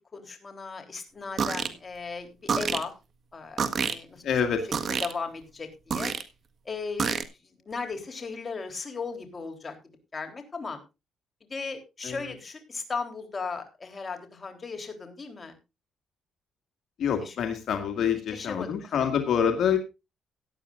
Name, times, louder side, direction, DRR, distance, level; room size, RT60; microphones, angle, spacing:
voice 1, 0.1-2.9 3.3-4.2 5.0-6.1 6.7-7.2 7.6-9.8 10.1-10.8 11.5-15.5 17.2-17.3 18.3-19.0, left 4 dB, 30° left, 5 dB, 3.6 m, -36 dB
sound 1, 1.4-1.7 2.5-2.8 3.6-3.9 4.7-5.1 5.9-6.2 7.0-7.2, right 6 dB, 50° right, 1.6 m, -27 dB
voice 2, 4.2-4.7 12.0-12.2 17.0-19.8, left 8 dB, 70° left, 6 dB, 2.1 m, -26 dB
17.5 x 11.0 x 2.5 m, 0.27 s
cardioid pair, 90°, 0 cm